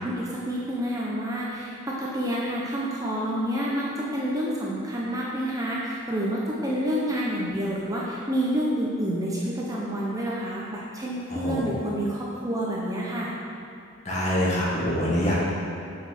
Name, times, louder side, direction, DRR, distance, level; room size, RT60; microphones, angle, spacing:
voice 1, 0.0-13.3, equal, 15° right, -5 dB, 0.9 m, -28 dB
voice 2, 11.3-11.7 14.1-15.4, equal, 35° left, -6 dB, 1.9 m, -25 dB
7.9 x 5.8 x 6.1 m, 2.6 s
head